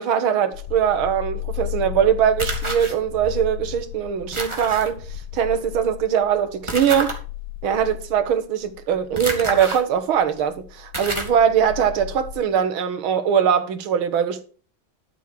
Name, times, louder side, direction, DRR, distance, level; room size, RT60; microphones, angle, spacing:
voice 1, 0.0-5.0 5.3-7.1 7.6-14.4, right 8 dB, 85° right, 2.0 m, -21 dB
sound 1, 0.5-12.4, left 12 dB, 75° left, 1.9 m, -35 dB
sound 2, 2.4-2.9 4.3-4.9 6.7-7.2 9.2-9.8 10.4-10.5 10.9-11.4, right 2 dB, 15° right, 2.0 m, -28 dB
12.0 x 6.9 x 4.5 m
omnidirectional pair, 2.2 m